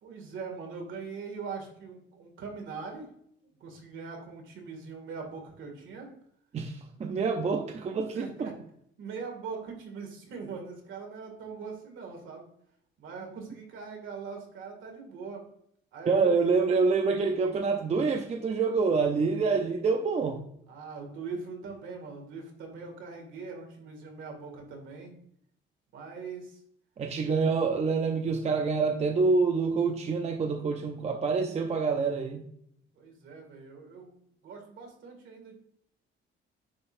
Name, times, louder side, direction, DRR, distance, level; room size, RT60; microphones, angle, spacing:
voice 1, 0.0-3.1 3.6-6.1 8.1-8.5 9.0-12.5 13.0-15.4 15.9-16.5 20.7-25.2 25.9-26.6 32.9-35.5, right 5 dB, 75° right, 1 dB, 2.2 m, -41 dB
voice 2, 6.5-8.5 16.1-20.4 27.0-32.5, right 4 dB, 30° right, 5 dB, 0.5 m, -27 dB
9.6 x 3.9 x 2.6 m, 0.70 s
cardioid pair, 150°, 20 cm